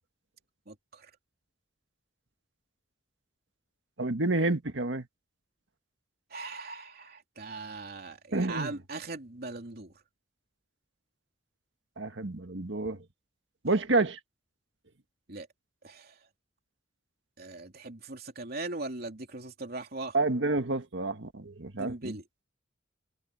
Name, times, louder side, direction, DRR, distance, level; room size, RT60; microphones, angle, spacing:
voice 1, 0.7-1.1 6.3-9.9 13.7-13.8 15.3-15.5 15.8-16.2 17.4-20.2 21.7-22.2, right 2 dB, 55° right, 3.1 m, -40 dB
voice 2, 4.0-5.1 8.3-8.7 12.0-13.0 13.6-14.2 20.1-22.2, right 2 dB, 70° right, 1.7 m, -29 dB
head